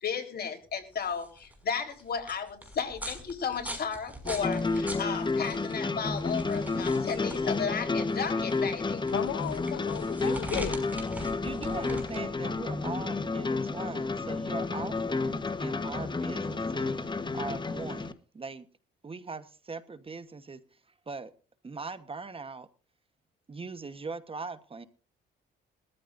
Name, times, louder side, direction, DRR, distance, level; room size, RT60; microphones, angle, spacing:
voice 1, 0.0-9.1, left 6 dB, 55° left, 3.8 m, -34 dB
sound 1, 0.8-15.4, right 1 dB, 10° right, 5.8 m, -43 dB
sound 2, 4.2-18.1, left 3 dB, 25° left, 1.2 m, -31 dB
voice 2, 9.1-10.8, left 12 dB, 75° left, 0.7 m, -34 dB
voice 3, 10.2-11.0 11.4-18.7 19.0-20.6 21.1-21.3 21.6-22.7 23.5-24.9, right 4 dB, 30° right, 1.1 m, -40 dB
21.5 x 14.0 x 2.6 m
cardioid pair, 90°, 20 cm